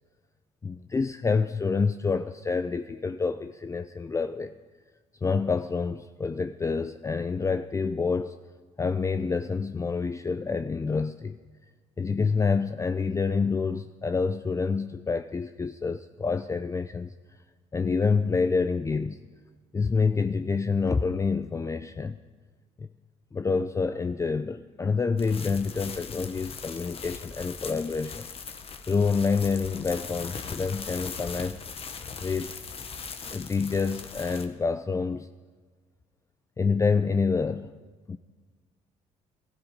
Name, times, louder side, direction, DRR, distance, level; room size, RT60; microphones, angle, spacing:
voice 1, 0.6-4.5 5.2-8.4 8.8-11.4 12.0-17.1 17.7-19.2 19.7-22.2 22.8-22.9 23.3-28.3 28.9-31.6 32.2-32.5 33.3-35.3 36.6-37.8 38.1-38.2, left 4 dB, 20° left, 10 dB, 0.5 m, -27 dB
sound 1, 25.2-34.5, left 5 dB, 40° left, 1.3 m, -40 dB
15.5 x 14.5 x 5.2 m, 1.4 s
supercardioid pair, 70°, 14 cm